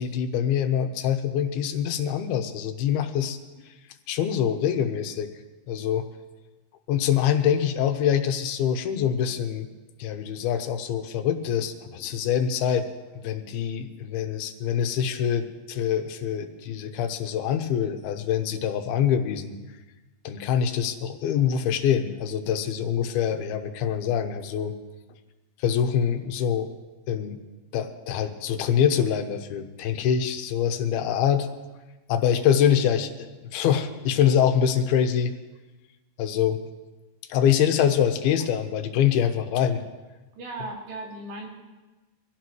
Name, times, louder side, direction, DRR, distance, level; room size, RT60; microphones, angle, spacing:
voice 1, 0.0-3.4 4.1-5.3 5.7-6.1 6.9-9.7 10.0-12.9 13.2-19.6 20.2-24.7 25.6-26.7 27.1-27.4 27.7-31.5 32.1-35.4 36.2-36.6 37.3-39.8, left 9 dB, 90° left, 7 dB, 2.8 m, -24 dB
voice 2, 40.3-41.5, right 2 dB, 80° right, -1 dB, 4.6 m, -36 dB
24.0 x 16.0 x 3.2 m, 1.2 s
omnidirectional pair, 4.4 m